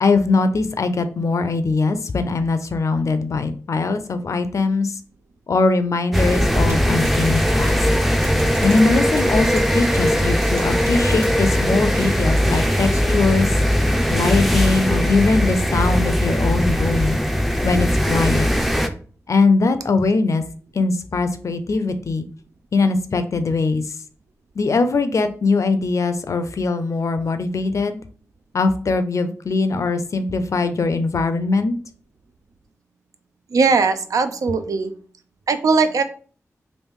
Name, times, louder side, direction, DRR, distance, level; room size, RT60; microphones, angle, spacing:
voice 1, 0.0-5.0 5.5-7.8 8.6-13.5 14.1-17.2 17.6-18.5 19.3-20.4 20.7-22.3 22.7-24.0 24.6-28.0 28.5-31.7, left 3 dB, 65° left, 10 dB, 0.4 m, -21 dB
sound 1, 6.1-18.9, equal, ahead, 0.4 m, -19 dB
sound 2, 6.1-13.1, right 2 dB, 50° right, 1.2 m, -41 dB
voice 2, 33.5-34.9 35.5-36.0, right 4 dB, 85° right, 9 dB, 0.4 m, -19 dB
3.1 x 2.6 x 3.5 m, 0.43 s
wide cardioid pair, 70°, 6 cm